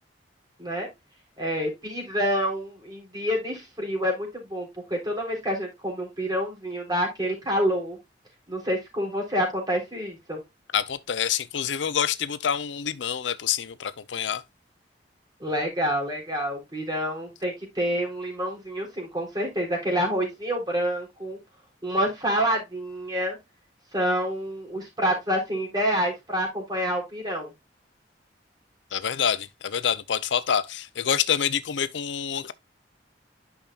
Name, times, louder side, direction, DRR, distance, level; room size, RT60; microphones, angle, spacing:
voice 1, 1.4-8.0 8.5-10.4 15.4-21.4 21.8-23.4 23.9-27.5, equal, 20° right, 3.9 m, -27 dB
voice 2, 10.7-14.4 28.9-32.5, left 8 dB, 85° left, 0.6 m, -27 dB
10.5 x 5.9 x 2.4 m
head